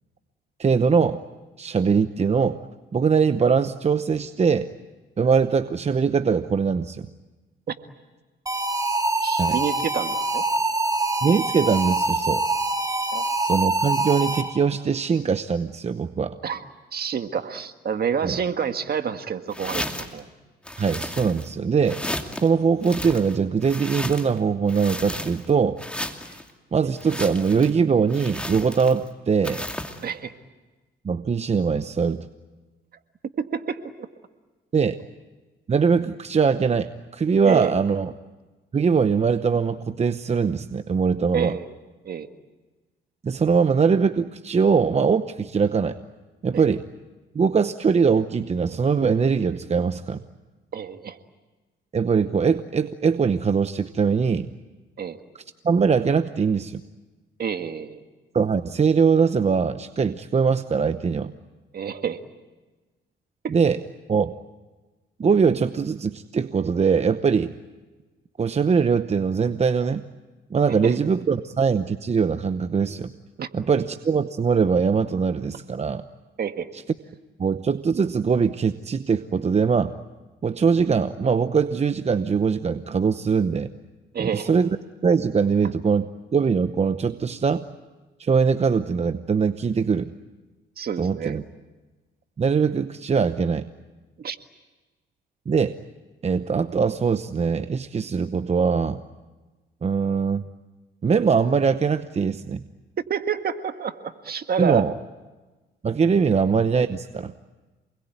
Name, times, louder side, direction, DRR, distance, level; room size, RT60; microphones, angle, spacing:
voice 1, 0.6-1.2 1.6-2.6 2.9-4.7 5.2-7.1 9.4-9.6 11.2-12.5 13.4-16.4 18.2-18.4 20.8-22.0 22.4-25.8 26.7-29.6 31.0-32.3 34.7-34.9 35.7-38.1 38.7-41.6 43.2-46.0 46.4-46.8 47.3-50.2 51.9-54.5 55.6-56.8 58.3-61.3 63.5-63.8 64.1-64.3 65.2-67.5 68.4-70.0 70.5-73.1 73.5-76.0 76.7-76.8 77.4-79.9 80.4-83.7 84.2-84.7 85.0-86.1 86.3-87.6 88.2-90.1 91.0-91.4 92.4-93.7 95.5-95.7 96.2-99.0 99.8-100.4 101.0-102.6 104.6-104.9 105.8-107.3, right 5 dB, 35° right, 10 dB, 0.9 m, -22 dB
sound 1, 8.5-14.7, right 2 dB, 15° right, 1.8 m, -25 dB
voice 2, 9.2-10.4 13.1-13.3 16.4-16.6 16.9-19.8 20.1-20.3 30.0-30.3 33.4-34.1 37.4-37.7 41.3-41.7 42.0-42.3 46.5-46.7 50.7-51.2 55.0-55.2 57.4-58.0 61.7-62.2 63.4-63.5 70.8-70.9 73.4-73.5 76.4-76.7 84.1-84.5 90.8-91.4 94.2-94.4 103.1-104.8, right 7 dB, 50° right, 8 dB, 1.8 m, -28 dB
sound 2, 19.5-20.2 20.7-21.5 21.9-22.5 22.8-24.4 24.7-25.5 25.8-26.4 27.0-27.7 28.1-29.1 29.4-30.0, left 1 dB, 5° left, 2.6 m, -33 dB
28.0 x 21.5 x 9.2 m, 1.2 s
cardioid pair, 90°, 20 cm